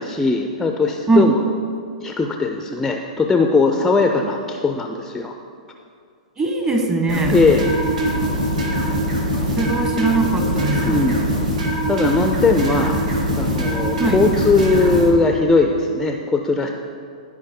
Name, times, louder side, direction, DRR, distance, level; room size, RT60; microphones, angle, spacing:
voice 1, 0.0-1.3 2.0-5.3 7.3-7.7 10.9-11.3 11.9-13.0 13.4-16.7, left 3 dB, 10° left, 4 dB, 0.5 m, -19 dB
voice 2, 6.4-7.4 9.6-11.0 14.0-14.2, right 3 dB, 20° right, 4 dB, 1.2 m, -20 dB
sound 1, 7.1-15.1, equal, 75° right, 1.8 m, -22 dB
14.0 x 4.9 x 3.7 m, 2.3 s
hypercardioid pair, 115°, 4 cm